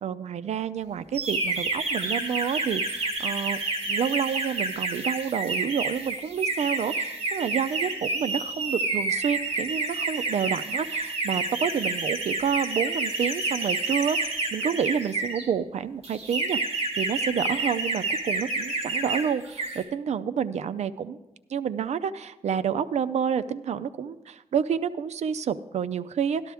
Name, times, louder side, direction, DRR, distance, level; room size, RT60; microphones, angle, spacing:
voice 1, 0.0-3.6 3.9-16.6 17.0-21.2 21.5-26.5, right 7 dB, 85° right, 13 dB, 0.5 m, -29 dB
sound 1, 1.1-15.4 16.0-19.2 19.5-19.8, right 3 dB, 70° right, 2.7 m, -29 dB
13.0 x 11.5 x 3.5 m, 0.97 s
wide cardioid pair, 105°, 11 cm